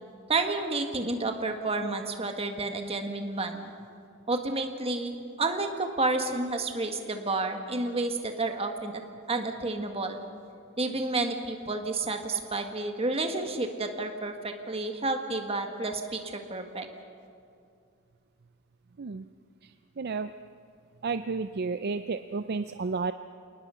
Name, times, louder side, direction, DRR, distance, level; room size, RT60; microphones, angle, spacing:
voice 1, 0.3-3.7 4.3-9.0 9.3-10.2 10.8-16.9, right 2 dB, 25° right, 5 dB, 1.6 m, -30 dB
voice 2, 21.0-23.1, right 4 dB, 45° right, 11 dB, 0.5 m, -31 dB
28.5 x 19.0 x 5.7 m, 2.4 s
head